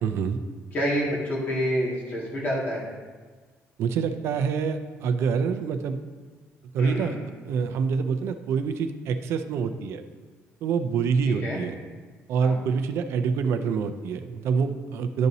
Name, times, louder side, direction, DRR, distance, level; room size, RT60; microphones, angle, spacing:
voice 1, 0.0-0.4 3.8-6.0 6.7-7.1 7.5-10.0 10.6-11.8 12.3-15.3, right 6 dB, 65° right, 8 dB, 0.5 m, -26 dB
voice 2, 0.7-2.9 6.8-7.1 11.4-11.6 12.4-12.6, equal, 35° left, -5 dB, 1.9 m, -27 dB
11.5 x 4.1 x 2.7 m, 1.4 s
cardioid pair, 160°, 5 cm